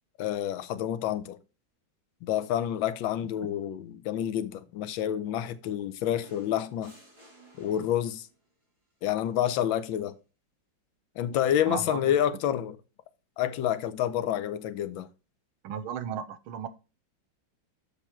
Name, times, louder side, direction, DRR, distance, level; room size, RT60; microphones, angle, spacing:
voice 1, 0.2-1.4 2.2-6.9 7.6-8.3 9.0-10.1 11.2-12.8 13.4-15.1, left 10 dB, 75° left, 1.3 m, -28 dB
sound 1, 6.2-8.4 9.8-10.0, right 1 dB, 15° right, 2.5 m, -56 dB
voice 2, 11.7-12.1 15.6-16.7, right 8 dB, 90° right, 1.6 m, -35 dB
6.9 x 5.5 x 4.4 m
omnidirectional pair, 2.3 m